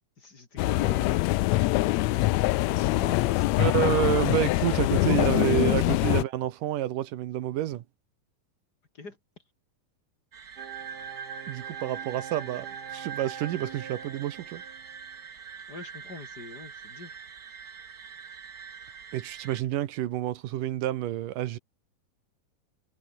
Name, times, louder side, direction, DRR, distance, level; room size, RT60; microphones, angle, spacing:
voice 1, 0.2-1.2 2.5-4.1 4.8-6.0 8.9-9.2 15.7-17.2, left 3 dB, 30° left, 3.1 m, -41 dB
sound 1, 0.6-6.2, left 19 dB, 85° left, 1.6 m, -24 dB
voice 2, 3.6-7.8 11.5-14.6 19.1-21.6, right 13 dB, 80° right, 2.7 m, -29 dB
sound 2, 10.3-19.6, right 6 dB, 40° right, 1.9 m, -45 dB
sound 3, 10.6-15.0, right 8 dB, 60° right, 1.0 m, -41 dB
omnidirectional pair, 3.8 m